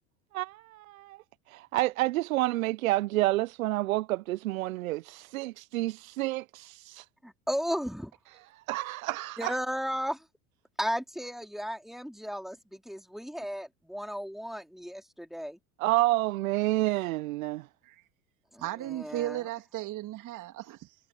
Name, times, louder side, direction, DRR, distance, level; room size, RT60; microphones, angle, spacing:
voice 1, 0.3-7.1 8.5-9.6 15.8-17.7, right 17 dB, 65° right, 1.0 m, -29 dB
voice 2, 7.2-8.1 9.4-10.3 10.8-15.6 18.5-19.5, equal, ahead, 4.1 m, -35 dB
voice 3, 18.6-21.0, right 15 dB, 45° right, 2.9 m, -36 dB
figure-of-eight pair, 75°, 44 cm